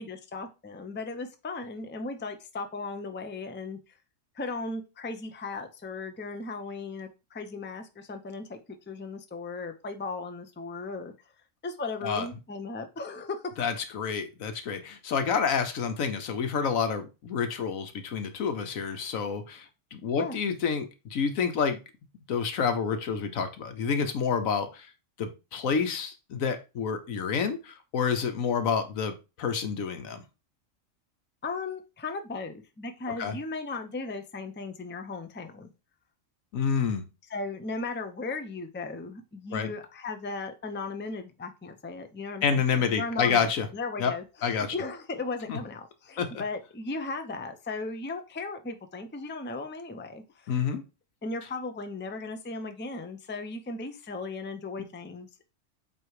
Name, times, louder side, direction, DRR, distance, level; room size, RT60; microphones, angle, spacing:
voice 1, 0.0-3.8 4.3-8.6 8.9-11.1 11.6-13.4 20.2-20.4 31.4-35.7 37.3-50.6 51.2-55.5, left 3 dB, 15° left, 7 dB, 0.5 m, -36 dB
voice 2, 13.6-19.6 19.9-21.8 22.3-24.9 25.2-30.2 33.2-33.4 36.5-37.0 39.5-39.7 42.4-43.7 44.0-44.1 44.4-44.7 45.5-45.6 46.2-46.3 50.5-50.8, left 6 dB, 85° left, 8 dB, 1.3 m, -28 dB
7.9 x 3.0 x 4.7 m, 0.29 s
omnidirectional pair, 1.4 m